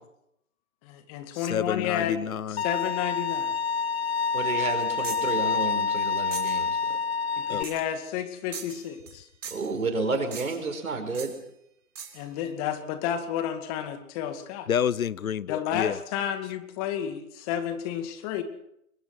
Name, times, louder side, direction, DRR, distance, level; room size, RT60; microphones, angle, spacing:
voice 1, 0.8-2.2 2.6-3.6 7.6-9.3 12.1-14.7 15.5-18.4, left 9 dB, 25° left, 2.2 m, -31 dB
voice 2, 1.3-2.6 7.5-7.7 14.7-16.0, left 8 dB, 80° left, 0.9 m, -29 dB
Bowed string instrument, 2.6-7.6, left 5 dB, 50° left, 1.3 m, -27 dB
voice 3, 4.3-7.0 9.5-11.3, right 3 dB, 85° right, 5.5 m, -31 dB
sound 1, 5.0-5.3 6.3-6.6 7.6-7.9 8.5-9.2 9.4-9.8 10.3-10.7 11.1-11.4 12.0-12.2, right 7 dB, 60° right, 4.4 m, -40 dB
22.5 x 21.0 x 6.0 m
hypercardioid pair, 145°, 41 cm